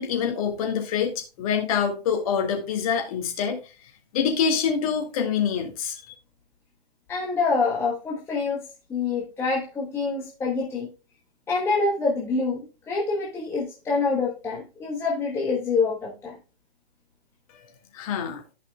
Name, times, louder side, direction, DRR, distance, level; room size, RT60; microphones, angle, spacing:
voice 1, 0.0-3.6 4.1-6.1 17.5-17.6 17.9-18.4, left 7 dB, 35° left, 3 dB, 2.3 m, -26 dB
voice 2, 7.1-8.6 8.9-10.9 11.5-16.3, left 4 dB, 10° left, -3 dB, 1.2 m, -26 dB
14.5 x 5.6 x 2.3 m, 0.31 s
figure-of-eight pair, 140°, 32 cm